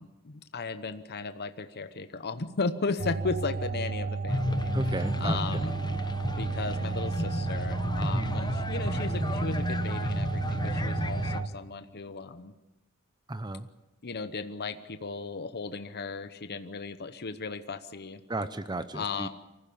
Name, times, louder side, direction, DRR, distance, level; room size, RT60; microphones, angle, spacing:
voice 1, 0.0-5.7 6.4-12.5 14.0-18.2 18.9-19.3, left 4 dB, 45° left, 10 dB, 0.9 m, -36 dB
sound 1, 3.0-11.5, right 4 dB, 50° right, 1.0 m, -33 dB
sound 2, 4.3-11.4, left 1 dB, 20° left, 0.9 m, -32 dB
voice 2, 4.7-5.6 8.0-8.4 13.3-13.7 18.3-19.3, right 2 dB, 20° right, 12 dB, 0.7 m, -34 dB
24.0 x 15.5 x 8.6 m, 1.0 s
head